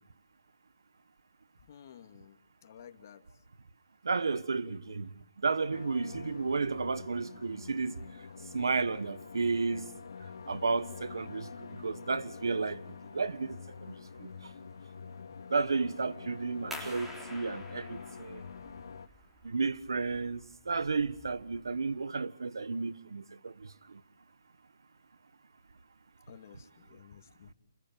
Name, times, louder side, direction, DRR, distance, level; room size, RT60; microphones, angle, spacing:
voice 1, 1.7-3.4 4.3-5.0 26.3-27.5, left 9 dB, 45° left, 2.6 m, -54 dB
voice 2, 4.0-5.1 5.4-8.0 8.5-9.9 10.5-11.5 11.8-12.8 13.1-13.6 13.8-13.9 14.2-14.3 15.5-18.4 19.4-24.0, right 4 dB, 85° right, 1.4 m, -32 dB
sound 1, 5.7-19.1, left 5 dB, 70° left, 1.4 m, -46 dB
sound 2, 16.7-22.0, left 1 dB, 5° right, 4.1 m, -49 dB
29.0 x 21.5 x 9.1 m
hypercardioid pair, 155°, 2 cm